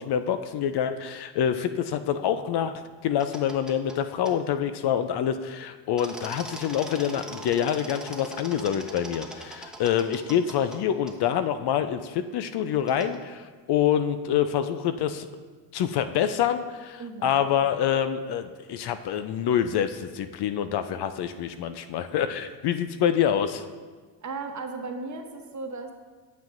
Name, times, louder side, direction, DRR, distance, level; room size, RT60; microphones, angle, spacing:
voice 1, 0.0-2.7 3.0-15.3 15.7-23.6, left 9 dB, 55° left, 10 dB, 0.5 m, -26 dB
sound 1, 3.2-4.0 4.2-4.3 6.0-10.8 11.1-11.2 12.9-13.2, right 1 dB, ahead, 1.0 m, -41 dB
voice 2, 17.0-17.4 24.2-25.9, right 3 dB, 35° right, 4 dB, 1.1 m, -36 dB
8.9 x 7.4 x 2.6 m, 1.4 s
supercardioid pair, 75°, 49 cm